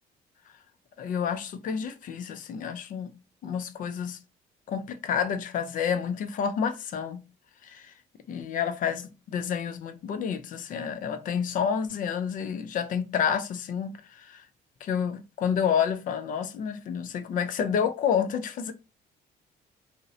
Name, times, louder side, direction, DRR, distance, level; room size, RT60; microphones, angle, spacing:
voice 1, 1.0-3.1 3.4-4.2 4.7-7.2 7.6-7.9 8.3-14.5 14.8-18.7, left 7 dB, 55° left, 0.4 m, -29 dB
2.5 x 2.0 x 2.6 m
cardioid pair, 110°, 17 cm